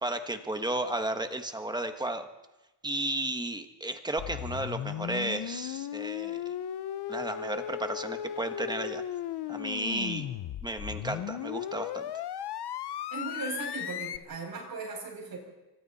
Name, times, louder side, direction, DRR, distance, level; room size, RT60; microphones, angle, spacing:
voice 1, 0.0-2.3 2.8-6.4 7.1-9.0 9.5-10.3 10.6-12.1, right 1 dB, 10° right, 7 dB, 1.4 m, -33 dB
sound 1, 4.2-14.2, left 10 dB, 60° left, 0.9 m, -36 dB
voice 2, 13.1-15.4, right 3 dB, 55° right, 0 dB, 8.0 m, -37 dB
29.5 x 24.5 x 4.3 m, 1.0 s
cardioid pair, 145°, 44 cm